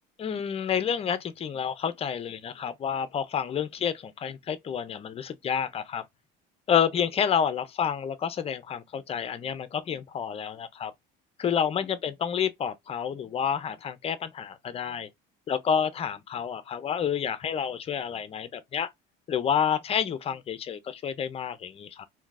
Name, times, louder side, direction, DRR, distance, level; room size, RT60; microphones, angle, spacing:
voice 1, 0.2-6.0 6.7-10.9 11.4-15.1 15.5-18.9 19.3-22.1, left 8 dB, 30° left, 0.5 m, -29 dB
3.7 x 2.6 x 2.4 m
cardioid pair, 135°, 21 cm